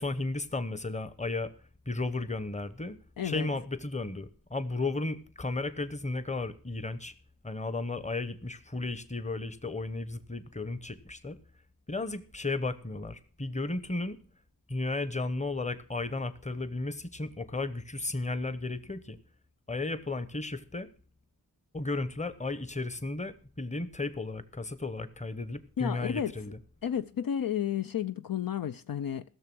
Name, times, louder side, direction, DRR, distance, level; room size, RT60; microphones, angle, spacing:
voice 1, 0.0-1.5 1.9-3.0 3.2-7.1 7.4-11.4 11.9-14.2 14.7-19.2 19.7-20.9 21.7-26.6, left 2 dB, 20° left, 0.9 m, -34 dB
voice 2, 3.2-3.5 25.8-26.3 26.8-29.2, left 9 dB, 65° left, 0.5 m, -32 dB
16.0 x 6.8 x 6.1 m
wide cardioid pair, 75°, 38 cm